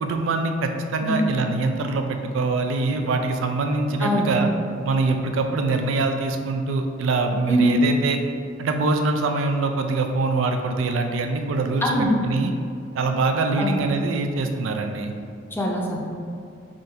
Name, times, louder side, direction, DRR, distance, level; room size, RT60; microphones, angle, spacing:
voice 1, 0.0-4.5 4.8-8.2 8.6-12.5 12.9-15.1, right 3 dB, 85° right, 5 dB, 0.4 m, -24 dB
voice 2, 4.0-4.3 7.5-7.6 11.8-12.2 13.6-13.9 15.5-16.0, equal, 10° left, -2 dB, 0.5 m, -23 dB
3.7 x 2.6 x 4.2 m, 2.3 s
head